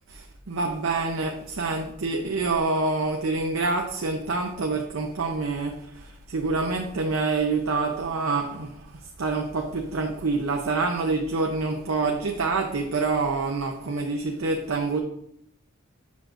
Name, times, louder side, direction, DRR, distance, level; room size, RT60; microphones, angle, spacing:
voice 1, 0.1-8.7 9.2-15.0, right 3 dB, 80° right, 3 dB, 0.6 m, -26 dB
7.0 x 6.0 x 2.6 m, 0.75 s
head